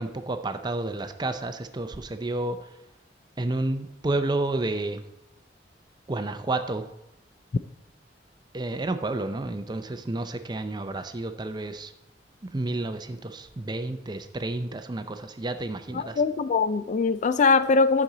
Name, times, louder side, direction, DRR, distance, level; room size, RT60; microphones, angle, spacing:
voice 1, 0.0-2.6 3.4-5.0 6.1-6.9 8.5-11.9 12.5-16.2, right 2 dB, 25° right, 9 dB, 0.5 m, -30 dB
voice 2, 15.9-18.0, left 4 dB, 45° left, 13 dB, 0.3 m, -22 dB
10.0 x 6.1 x 3.9 m, 0.83 s
head